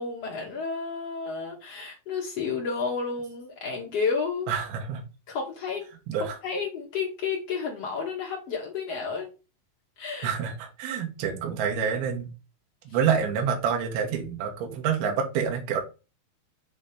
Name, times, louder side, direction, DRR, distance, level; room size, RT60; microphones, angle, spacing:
voice 1, 0.0-4.5 5.3-5.8 6.4-9.3 10.0-10.3, left 5 dB, 70° left, -1 dB, 1.5 m, -31 dB
voice 2, 4.5-5.0 6.1-6.4 10.2-12.3 12.9-15.8, right 7 dB, 75° right, 3 dB, 3.1 m, -27 dB
7.7 x 3.0 x 5.0 m, 0.30 s
omnidirectional pair, 4.6 m